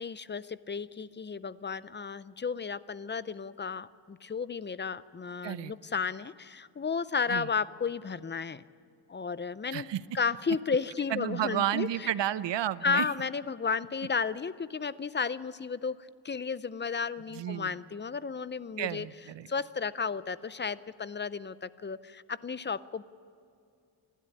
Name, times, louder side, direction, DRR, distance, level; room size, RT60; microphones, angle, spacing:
voice 1, 0.0-8.6 9.1-9.9 10.1-12.1 12.8-16.0 16.2-19.1 19.5-23.0, left 5 dB, 25° left, 16 dB, 0.5 m, -33 dB
voice 2, 11.1-13.0 17.3-17.7 18.8-19.5, right 11 dB, 75° right, 16 dB, 0.8 m, -31 dB
28.0 x 12.0 x 9.7 m, 2.4 s
wide cardioid pair, 120°, 43 cm